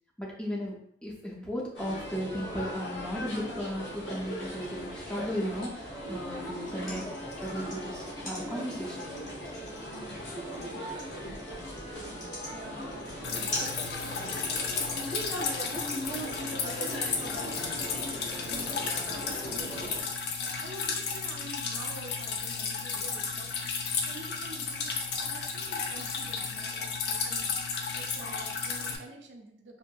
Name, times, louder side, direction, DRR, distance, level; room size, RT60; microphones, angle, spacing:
voice 1, 0.2-7.0 7.4-9.1, equal, 5° left, -4 dB, 0.4 m, -36 dB
sound 1, 1.7-20.0, equal, 80° left, 0.8 m, -39 dB
sound 2, 6.5-17.8, left 1 dB, 45° left, 0.8 m, -43 dB
voice 2, 12.5-13.8 14.2-14.4 16.1-16.4 16.8-24.9 25.2-29.8, right 2 dB, 80° right, 3 dB, 0.4 m, -48 dB
Drip, 13.2-29.0, left 5 dB, 65° left, 0.4 m, -33 dB
2.7 x 2.5 x 2.2 m, 0.71 s
head